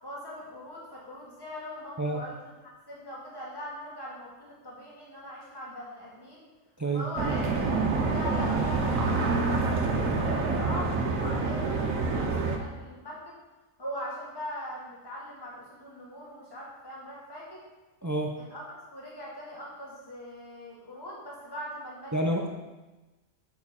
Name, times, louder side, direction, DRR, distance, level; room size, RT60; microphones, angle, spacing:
voice 1, 0.0-6.4 6.9-13.4 13.8-17.6 18.4-22.5, left 1 dB, 20° left, -5 dB, 1.8 m, -41 dB
voice 2, 6.8-7.3 18.0-18.3 22.1-22.5, right 2 dB, 25° right, 2 dB, 0.4 m, -29 dB
sound 1, 7.2-12.6, right 3 dB, 85° right, 1.3 m, -27 dB
7.0 x 6.9 x 4.2 m, 1.1 s
omnidirectional pair, 1.4 m